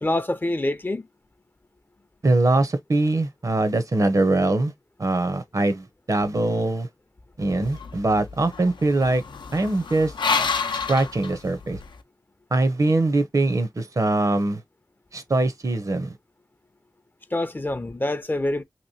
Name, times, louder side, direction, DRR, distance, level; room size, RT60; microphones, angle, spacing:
voice 1, 0.0-1.1 17.3-18.6, left 1 dB, 25° left, 0.5 m, -26 dB
voice 2, 2.2-4.7 5.0-6.9 7.4-9.2 9.5-10.1 10.9-11.8 12.5-14.6 15.1-16.2, right 2 dB, 45° right, 0.6 m, -22 dB
sound 1, 7.6-12.0, left 5 dB, 85° left, 0.5 m, -29 dB
3.0 x 2.9 x 2.6 m
wide cardioid pair, 75°, 8 cm